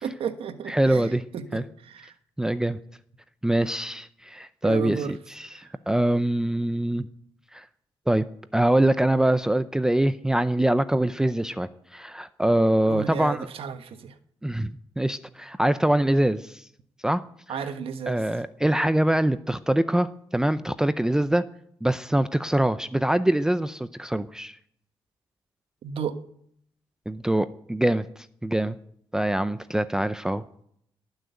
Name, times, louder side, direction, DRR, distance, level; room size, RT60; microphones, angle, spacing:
voice 1, 0.0-2.1 4.6-5.1 5.5-5.7 12.9-14.1 17.5-18.2 25.8-26.2, right 7 dB, 70° right, 9 dB, 1.4 m, -33 dB
voice 2, 0.7-1.2 1.5-1.6 2.4-2.8 3.4-7.1 7.5-7.6 8.1-8.3 8.5-13.5 14.4-16.6 17.0-17.2 17.5-17.6 18.1-21.5 21.8-24.6 27.1-28.0 28.4-28.8 29.1-30.6, right 1 dB, 5° right, 13 dB, 0.5 m, -24 dB
19.0 x 6.5 x 9.4 m, 0.68 s
wide cardioid pair, 145°, 10 cm